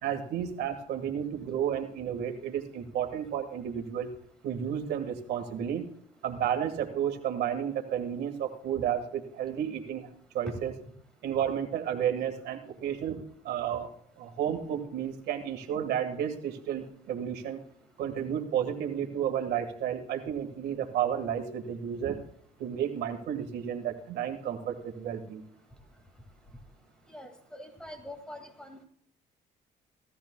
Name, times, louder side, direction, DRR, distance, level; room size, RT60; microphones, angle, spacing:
voice 1, 0.0-4.1 4.4-5.9 6.2-10.1 10.3-10.7 11.2-13.2 13.4-17.6 18.0-22.2 22.6-25.4, right 9 dB, 75° right, 5 dB, 1.7 m, -32 dB
voice 2, 27.1-28.8, left 1 dB, 5° left, 6 dB, 2.2 m, -45 dB
17.0 x 13.5 x 2.3 m, 0.65 s
cardioid pair, 110°, 17 cm